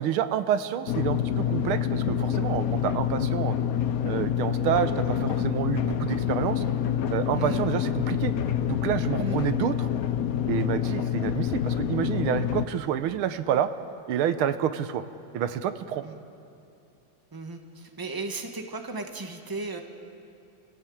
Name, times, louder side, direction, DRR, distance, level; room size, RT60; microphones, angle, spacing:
voice 1, 0.0-3.6 4.0-6.6 7.1-8.3 8.7-9.9 10.5-13.7 14.1-15.0 15.3-16.0, right 9 dB, 90° right, 11 dB, 1.7 m, -28 dB
sound 1, 0.9-12.7, left 9 dB, 60° left, 0.9 m, -27 dB
voice 2, 17.3-19.8, right 3 dB, 10° right, 4 dB, 1.3 m, -35 dB
29.0 x 15.5 x 8.7 m, 2.6 s
omnidirectional pair, 2.3 m